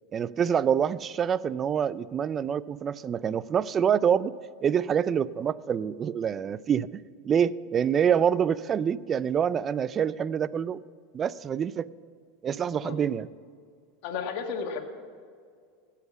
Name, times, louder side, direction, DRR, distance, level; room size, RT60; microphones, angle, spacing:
voice 1, 0.1-4.3 4.6-10.8 11.1-11.9 12.4-13.3, right 8 dB, 30° right, 19 dB, 0.4 m, -26 dB
voice 2, 14.0-14.9, left 6 dB, 60° left, 3 dB, 1.7 m, -33 dB
16.0 x 5.8 x 7.1 m, 2.1 s
hypercardioid pair, 95°, 0 cm